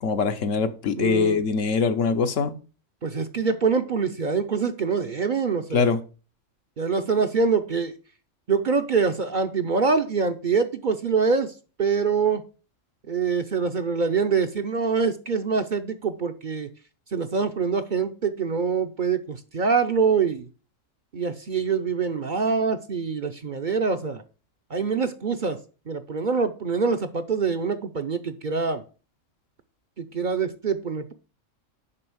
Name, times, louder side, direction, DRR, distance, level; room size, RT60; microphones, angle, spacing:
voice 1, 0.0-2.5 5.7-6.0, left 5 dB, 75° left, 1.2 m, -23 dB
voice 2, 0.9-1.4 3.0-5.9 6.8-7.9 8.5-11.5 11.8-12.5 13.1-16.7 17.1-20.5 21.1-24.2 24.7-25.6 25.9-28.8 30.0-31.1, right 5 dB, 50° right, 0.7 m, -25 dB
6.8 x 5.4 x 7.1 m
omnidirectional pair, 1.3 m